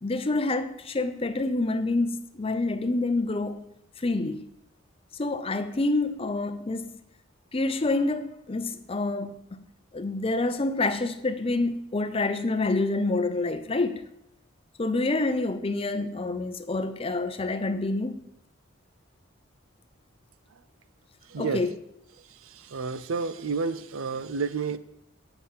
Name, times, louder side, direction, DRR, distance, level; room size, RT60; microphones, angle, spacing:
voice 1, 0.0-3.7 4.0-4.5 5.1-7.0 7.5-9.4 9.9-14.0 14.8-18.2 21.4-21.7, left 2 dB, 30° left, 0.5 m, -27 dB
voice 2, 21.3-21.6 22.4-24.8, right 4 dB, 90° right, 0.5 m, -30 dB
8.4 x 5.9 x 5.6 m
head